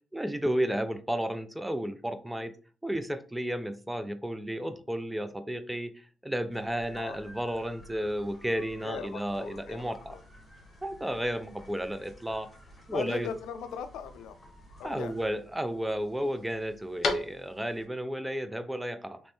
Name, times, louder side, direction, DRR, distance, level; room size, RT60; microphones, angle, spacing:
voice 1, 0.1-2.5 2.8-10.1 10.8-12.5 12.9-13.3 14.8-19.2, equal, 5° right, 11 dB, 0.4 m, -33 dB
sound 1, 6.5-15.3, equal, 15° left, 1.8 m, -53 dB
voice 2, 8.8-10.2 12.9-14.4 14.8-15.3, left 6 dB, 90° left, 10 dB, 0.3 m, -39 dB
sound 2, 9.4-17.9, left 3 dB, 50° left, 0.9 m, -41 dB
3.1 x 3.1 x 3.1 m, 0.40 s
cardioid pair, 90°, 0 cm